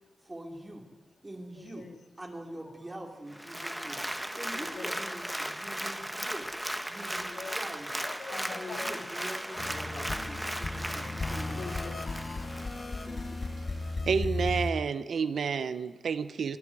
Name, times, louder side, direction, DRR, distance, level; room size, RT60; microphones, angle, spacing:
voice 1, 0.2-0.9 1.2-1.9 2.2-11.6 13.1-13.4, right 1 dB, 20° right, 1 dB, 4.9 m, -45 dB
voice 2, 1.5-2.0 2.7-2.8 3.5-4.2 4.5-5.0 5.4-5.6 7.1-7.6 8.0-9.1 9.4-10.2 10.7-12.9 13.1-14.0, left 4 dB, 80° left, 3 dB, 3.5 m, -46 dB
Applause, 3.3-13.1 13.5-13.6, right 1 dB, 5° right, 1.2 m, -37 dB
sound 1, 8.4-14.0, right 3 dB, 65° right, 7.6 m, -56 dB
sound 2, 9.6-14.7, left 2 dB, 50° left, 1.7 m, -35 dB
voice 3, 14.1-16.6, right 6 dB, 85° right, 12 dB, 1.0 m, -30 dB
26.5 x 23.5 x 4.9 m, 1.3 s
wide cardioid pair, 90°, 0 cm